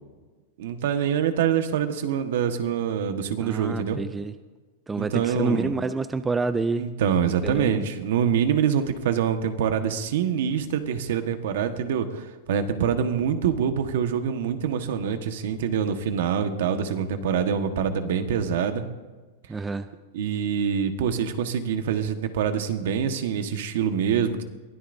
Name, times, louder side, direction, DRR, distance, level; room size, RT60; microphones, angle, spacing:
voice 1, 0.6-4.0 5.0-5.7 6.8-18.8 20.1-24.4, right 8 dB, 65° right, 7 dB, 1.4 m, -25 dB
voice 2, 3.4-4.3 4.9-6.9 7.4-7.8 19.5-19.9, right 3 dB, 10° right, 11 dB, 0.3 m, -28 dB
22.5 x 16.5 x 2.7 m, 1.3 s
supercardioid pair, 175°, 0 cm